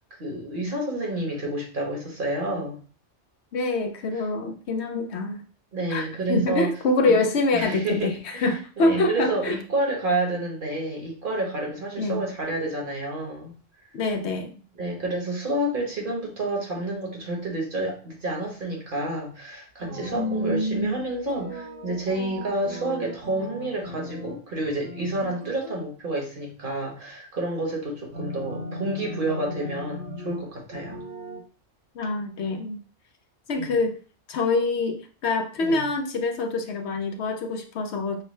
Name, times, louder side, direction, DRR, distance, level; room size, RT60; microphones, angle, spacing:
voice 1, 0.2-2.8 5.7-6.7 7.0-7.1 7.5-13.5 14.8-31.0 33.6-33.7 35.6-35.8, right 2 dB, 45° right, -1 dB, 1.3 m, -29 dB
voice 2, 3.5-5.4 5.9-9.6 12.0-12.2 13.9-14.6 20.1-21.0 31.9-32.8 33.5-34.0 34.3-38.2, left 2 dB, 70° left, 5 dB, 0.9 m, -25 dB
sound 1, 19.8-20.5 21.3-24.4 24.6-25.8 28.1-30.4 30.7-31.4, right 1 dB, 30° right, 1.0 m, -37 dB
6.0 x 2.2 x 3.2 m, 0.37 s
omnidirectional pair, 1.2 m